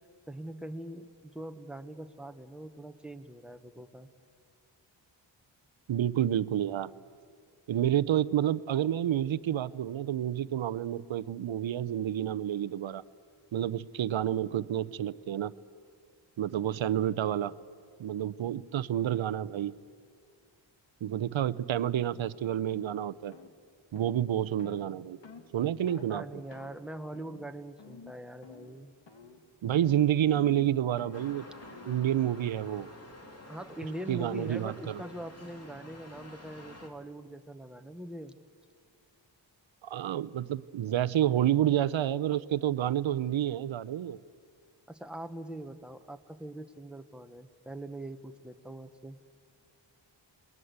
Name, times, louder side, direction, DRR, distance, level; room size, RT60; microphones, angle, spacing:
voice 1, 0.3-4.1 25.9-28.9 33.5-38.3 44.9-49.2, right 1 dB, ahead, 7 dB, 1.2 m, -42 dB
voice 2, 5.9-6.9 7.7-13.0 13.5-15.5 16.4-17.5 18.0-19.7 21.0-23.3 23.9-25.2 25.5-26.2 29.6-31.4 31.9-32.9 34.1-35.0 39.8-44.2, right 11 dB, 80° right, 17 dB, 0.7 m, -29 dB
sound 1, 22.0-22.2 22.7-22.9 23.3-23.5 24.0-24.2 24.6-24.8 25.2-25.5 25.9-26.1 26.5-26.8 27.1-27.5 27.8-28.2 28.4-28.8 29.1-29.4 29.7-32.0, left 5 dB, 65° left, 2.0 m, -50 dB
sound 2, 31.1-36.9, left 1 dB, 30° left, 2.9 m, -50 dB
28.0 x 21.0 x 8.1 m, 2.2 s
wide cardioid pair, 85°, 46 cm